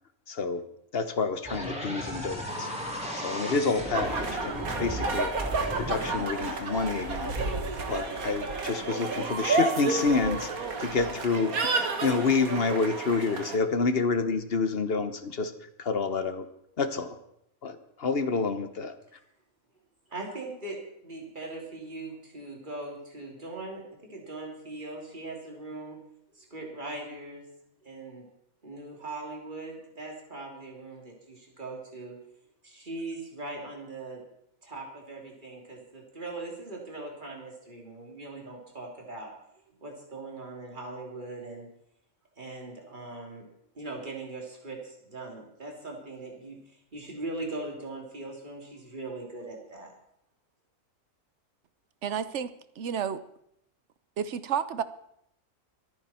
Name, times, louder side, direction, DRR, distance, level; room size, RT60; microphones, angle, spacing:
voice 1, 0.3-0.6 0.9-2.7 3.1-5.3 5.8-7.3 7.9-10.5 10.8-15.5 15.8-16.5 16.8-17.2 17.6-19.0, left 4 dB, 45° left, 11 dB, 1.1 m, -28 dB
sound 1, 1.4-7.8, equal, 5° right, 3.2 m, -36 dB
sound 2, 3.9-13.6, right 4 dB, 80° right, 2.0 m, -31 dB
voice 2, 20.1-23.8 24.1-26.0 26.3-27.5 27.8-28.3 28.6-32.2 32.6-34.2 34.6-39.3 39.8-41.7 42.4-43.4 43.7-49.9, right 2 dB, 35° right, 0 dB, 3.3 m, -40 dB
voice 3, 52.0-53.2 54.2-54.8, right 8 dB, 60° right, 14 dB, 1.0 m, -31 dB
25.0 x 9.7 x 4.4 m, 0.74 s
omnidirectional pair, 1.5 m